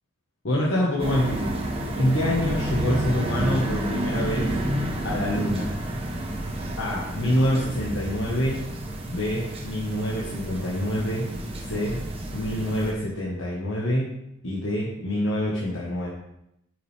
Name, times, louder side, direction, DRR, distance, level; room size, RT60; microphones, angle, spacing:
voice 1, 0.4-1.7 1.9-4.6 5.0-5.8 6.8-8.7 9.1-11.3 11.6-12.0 12.3-14.2 14.4-16.1, equal, 80° left, -5 dB, 1.5 m, -26 dB
sound 1, 1.0-12.9, right 1 dB, 30° right, 1.0 m, -30 dB
8.6 x 6.5 x 3.4 m, 0.81 s
head